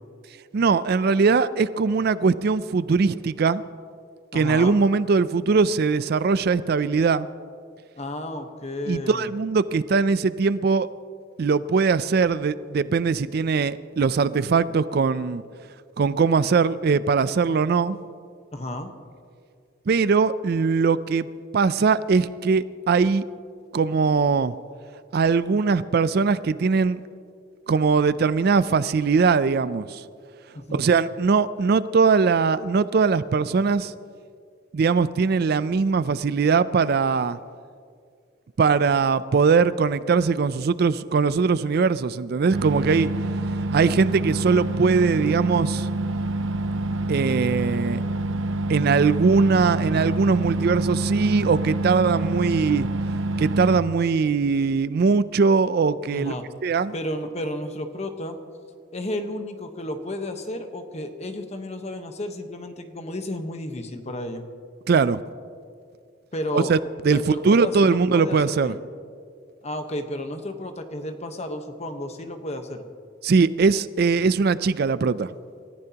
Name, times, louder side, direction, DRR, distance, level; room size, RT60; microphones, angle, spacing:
voice 1, 0.5-3.6 4.3-7.3 8.9-10.9 11.4-15.4 16.0-18.0 19.9-21.3 21.5-23.2 23.7-24.5 25.1-27.0 27.7-30.0 30.7-33.9 34.7-37.4 38.6-43.1 43.7-45.9 47.1-48.0 48.7-52.9 53.4-56.3 56.6-56.9 64.9-65.2 66.5-66.8 67.0-68.7 73.2-75.3, right 5 dB, 55° right, 16 dB, 0.4 m, -21 dB
voice 2, 4.3-4.8 8.0-9.3 18.5-18.9 30.5-30.9 56.1-56.5 56.9-58.4 58.9-64.5 66.3-66.7 67.1-68.8 69.6-72.8, left 1 dB, 35° left, 6 dB, 1.1 m, -32 dB
sound 1, 42.5-53.8, right 2 dB, 90° right, 0.8 m, -27 dB
28.0 x 14.5 x 2.9 m, 2.2 s
head